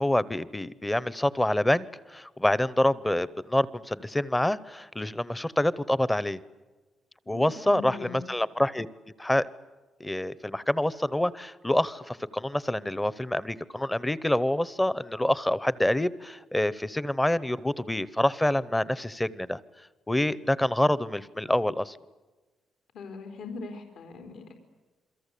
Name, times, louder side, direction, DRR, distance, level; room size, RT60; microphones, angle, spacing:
voice 1, 0.0-6.4 7.3-8.9 9.2-9.5 10.0-19.6 20.1-22.0, left 1 dB, 5° left, 18 dB, 0.8 m, -26 dB
voice 2, 7.3-8.3 22.9-24.5, left 4 dB, 75° left, 4 dB, 4.3 m, -41 dB
28.5 x 23.0 x 8.4 m, 1.2 s
cardioid pair, 170°, 0 cm